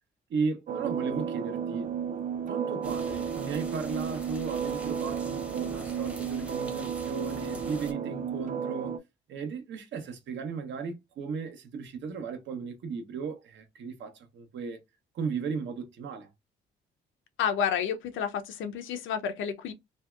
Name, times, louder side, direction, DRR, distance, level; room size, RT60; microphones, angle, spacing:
voice 1, 0.3-1.9 2.5-9.0 9.3-14.8 15.1-16.3, right 5 dB, 65° right, 0.8 m, -35 dB
sound 1, 0.7-9.0, right 7 dB, 40° right, 0.4 m, -33 dB
sound 2, 2.8-7.9, equal, 5° right, 0.7 m, -46 dB
voice 2, 17.4-19.7, left 8 dB, 75° left, 0.5 m, -30 dB
2.6 x 2.1 x 2.2 m
cardioid pair, 90°, 20 cm